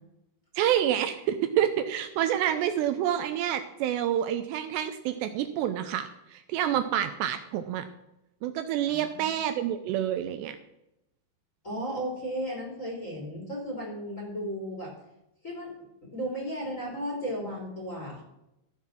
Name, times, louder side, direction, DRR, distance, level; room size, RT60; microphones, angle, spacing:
voice 1, 0.6-7.9 8.4-10.6, right 10 dB, 85° right, 9 dB, 2.7 m, -28 dB
voice 2, 8.9-9.2 11.6-14.9 15.4-15.7 16.0-18.2, equal, 20° left, -2 dB, 3.1 m, -35 dB
14.5 x 7.3 x 6.0 m, 0.87 s
omnidirectional pair, 5.3 m